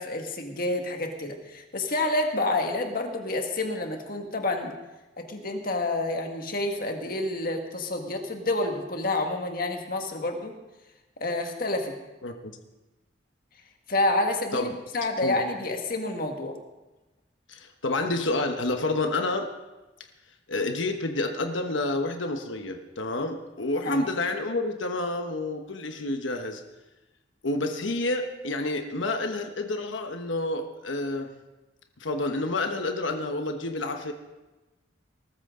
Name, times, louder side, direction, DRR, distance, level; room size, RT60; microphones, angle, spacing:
voice 1, 0.0-4.7 5.2-10.5 11.2-12.0 13.9-14.7 14.9-16.6 23.8-24.0, left 2 dB, 50° left, 4 dB, 1.8 m, -28 dB
voice 2, 17.5-19.5 20.5-26.6 27.4-31.3 32.0-34.1, left 2 dB, 90° left, 5 dB, 1.2 m, -29 dB
19.5 x 13.5 x 3.8 m, 1.1 s
head